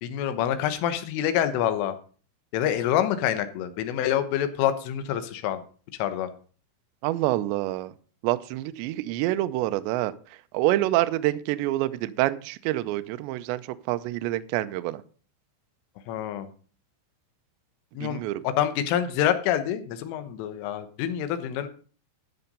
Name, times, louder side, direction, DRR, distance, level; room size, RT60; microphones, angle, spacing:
voice 1, 0.0-2.0 2.5-5.6 6.0-6.3 16.1-16.5 18.0-21.7, left 10 dB, 80° left, 9 dB, 3.5 m, -26 dB
voice 2, 7.0-7.9 8.2-10.1 10.5-13.6 13.9-15.0 18.0-18.4, right 16 dB, 85° right, 12 dB, 2.5 m, -26 dB
13.0 x 6.8 x 5.4 m, 0.41 s
omnidirectional pair, 5.9 m